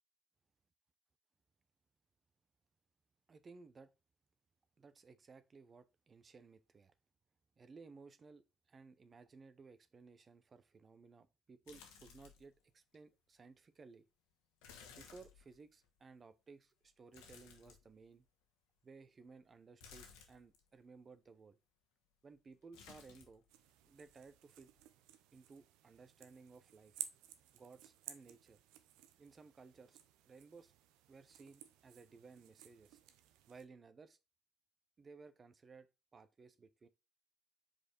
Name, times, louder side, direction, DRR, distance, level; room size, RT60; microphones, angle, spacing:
voice 1, 3.3-3.9 4.8-6.9 7.6-14.1 14.9-18.3 18.8-21.6 22.2-23.4 23.9-24.7 25.3-27.0 27.5-28.6 29.2-30.0 30.2-30.7 31.1-33.0 33.5-34.2 35.0-35.9 36.1-36.9, right 4 dB, 40° right, 0.8 m, -59 dB
sound 1, 11.7-12.6 12.9-13.0 14.6-15.9 17.1-18.2 19.8-20.6 22.7-23.4 23.7-24.3 24.7-24.8, left 6 dB, 85° left, 1.3 m, -59 dB
sound 2, 23.5-33.7, right 11 dB, 85° right, 0.7 m, -55 dB
5.0 x 4.4 x 4.5 m
supercardioid pair, 70°, 0 cm